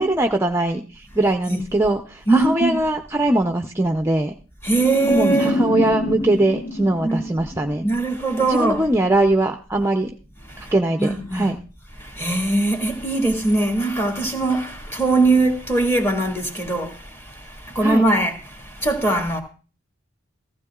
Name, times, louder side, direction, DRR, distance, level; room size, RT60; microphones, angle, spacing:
voice 1, 0.0-4.3 5.1-7.8 8.4-10.1 10.6-11.6 17.8-18.0, right 1 dB, 10° right, 0.5 m, -21 dB
voice 2, 2.3-2.8 4.6-5.6 7.0-7.2 7.8-8.8 10.5-10.7 11.0-11.5 12.0-19.4, right 2 dB, 10° left, 2.1 m, -21 dB
sound 1, 4.8-8.0, left 2 dB, 60° left, 1.4 m, -26 dB
15.5 x 15.0 x 2.4 m
head